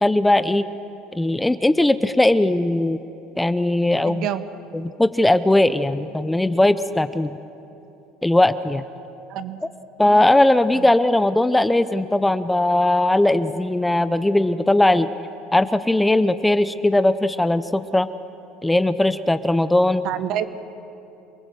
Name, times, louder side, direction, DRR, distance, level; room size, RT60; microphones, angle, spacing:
voice 1, 0.0-0.7 1.1-3.0 3.4-4.3 4.7-7.4 8.2-8.8 10.0-15.1 15.5-18.1 18.6-20.0, left 1 dB, 5° left, 13 dB, 0.6 m, -19 dB
voice 2, 4.0-4.4 9.3-9.6 10.7-10.9 20.0-20.4, right 11 dB, 55° right, 11 dB, 1.3 m, -27 dB
27.5 x 19.0 x 7.9 m, 2.9 s
cardioid pair, 130°, 0 cm